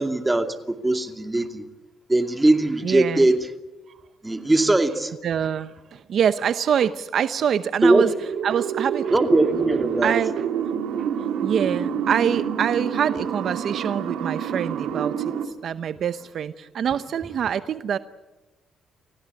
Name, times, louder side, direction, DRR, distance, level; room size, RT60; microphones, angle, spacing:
voice 1, 0.0-1.6 2.1-3.5 4.2-5.1 7.8-8.2 9.1-10.1, right 2 dB, 15° right, 6 dB, 2.5 m, -20 dB
voice 2, 2.8-3.3 5.2-8.1 8.4-9.1 10.0-10.3 11.0-11.1 11.4-18.0, right 8 dB, 60° right, 12 dB, 0.8 m, -25 dB
sound 1, 7.9-15.5, right 8 dB, 85° right, 2.3 m, -27 dB
29.5 x 16.0 x 9.7 m, 1.1 s
cardioid pair, 90°, 0 cm